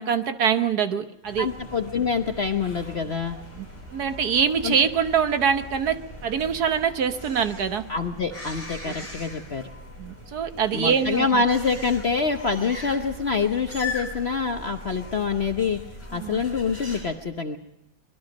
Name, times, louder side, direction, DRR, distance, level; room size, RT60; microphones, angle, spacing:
voice 1, 0.0-1.5 3.6-7.9 8.8-9.1 10.0-11.4 16.1-16.4, right 7 dB, 60° right, 9 dB, 1.4 m, -24 dB
sound 1, 1.2-17.0, left 2 dB, 5° left, 6.3 m, -40 dB
voice 2, 1.4-3.4 4.6-4.8 7.9-9.7 10.7-15.8 16.1-17.6, left 5 dB, 45° left, 6 dB, 0.9 m, -26 dB
24.5 x 21.0 x 5.2 m, 0.93 s
omnidirectional pair, 2.1 m